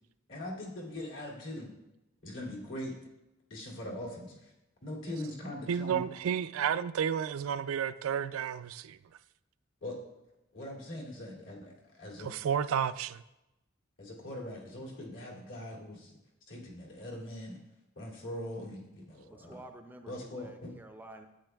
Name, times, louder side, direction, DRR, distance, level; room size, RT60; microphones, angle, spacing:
voice 1, 0.3-1.7 2.2-2.9 3.5-4.5 4.8-6.0 9.8-10.0 10.5-12.3 14.0-16.1 16.5-17.6 18.0-19.6 20.1-20.7, left 1 dB, 70° left, 2.6 m, -41 dB
voice 2, 5.7-9.0 12.2-13.2, right 8 dB, 85° right, 0.3 m, -31 dB
voice 3, 19.3-21.3, right 1 dB, 10° right, 0.4 m, -50 dB
12.0 x 9.0 x 2.3 m
head